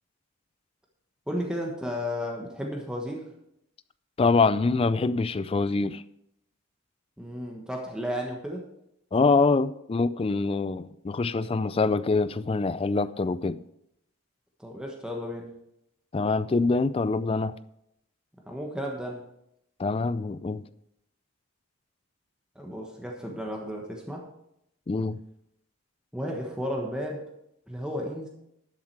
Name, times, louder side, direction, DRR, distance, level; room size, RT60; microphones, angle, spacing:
voice 1, 1.3-3.2 7.2-8.6 14.6-15.5 18.5-19.2 22.5-24.3 26.1-27.2 27.7-28.3, equal, 5° right, 1.2 m, -33 dB
voice 2, 4.2-6.0 9.1-13.6 16.1-17.6 19.8-20.6 24.9-25.2, left 3 dB, 25° left, 0.3 m, -25 dB
11.5 x 7.4 x 4.6 m
head